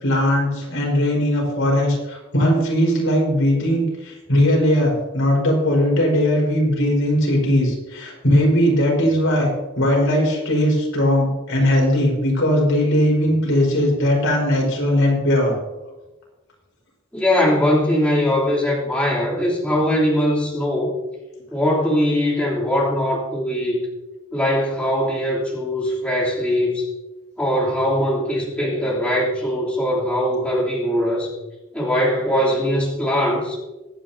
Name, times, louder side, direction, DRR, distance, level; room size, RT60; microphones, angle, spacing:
voice 1, 0.0-9.5 9.8-15.5, equal, 75° left, -1 dB, 4.9 m, -19 dB
voice 2, 17.1-21.0 21.5-23.9 24.3-26.9 27.4-31.3 31.7-33.6, equal, 5° left, -7 dB, 3.3 m, -21 dB
24.5 x 9.2 x 2.8 m, 1.1 s
head